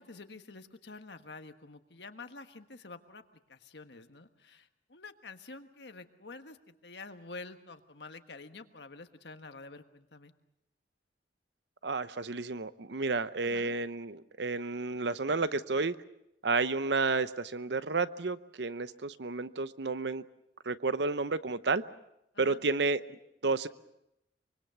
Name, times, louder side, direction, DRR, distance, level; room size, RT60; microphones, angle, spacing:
voice 1, 0.0-3.2 3.5-10.3 13.4-13.7 22.3-22.6, left 3 dB, 65° left, 8 dB, 1.4 m, -48 dB
voice 2, 11.8-15.9 16.4-20.2 20.6-21.8 22.4-23.7, right 3 dB, 70° right, 14 dB, 0.8 m, -31 dB
24.5 x 24.0 x 6.9 m, 0.83 s
head